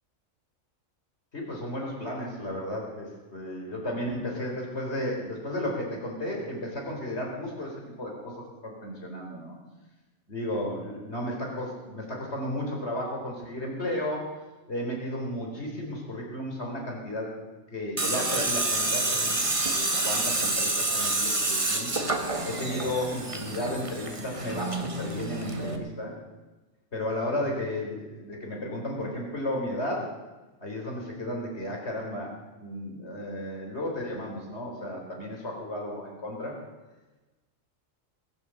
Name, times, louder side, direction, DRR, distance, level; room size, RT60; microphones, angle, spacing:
voice 1, 1.3-9.6 10.3-14.3 14.7-17.3 17.7-22.0 22.4-26.1 26.9-30.1 30.6-36.6, left 1 dB, 55° left, -1 dB, 4.3 m, -33 dB
Tools, 18.0-25.8, right 2 dB, 25° right, 1.4 m, -28 dB
21.0 x 8.0 x 7.6 m, 1.2 s
omnidirectional pair, 1.4 m